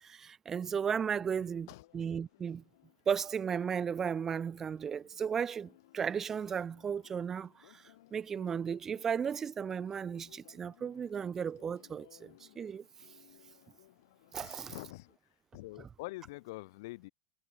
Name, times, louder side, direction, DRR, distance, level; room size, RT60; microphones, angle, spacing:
voice 1, 0.0-1.7 1.9-2.6 3.1-7.8 8.1-12.8 14.3-14.7, right 7 dB, 20° right, 0.7 m, -35 dB
sound 1, 1.3-15.2, left 16 dB, 90° left, 7.5 m, -63 dB
voice 2, 1.4-1.9 14.4-15.1 15.5-17.1, left 21 dB, 65° left, 2.3 m, -45 dB
supercardioid pair, 170°, 2 cm